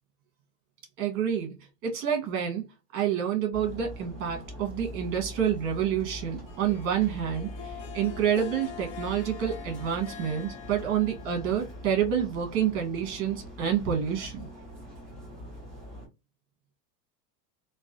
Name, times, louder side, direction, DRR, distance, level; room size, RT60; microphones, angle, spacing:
voice 1, 1.0-1.6 1.8-2.7 2.9-14.5, right 9 dB, 30° right, 1.0 m, -28 dB
sound 1, 3.5-16.1, equal, ahead, 1.8 m, -43 dB
Harp, 6.5-12.3, left 9 dB, 50° left, 0.7 m, -45 dB
3.2 x 2.3 x 2.4 m
supercardioid pair, 175°, 48 cm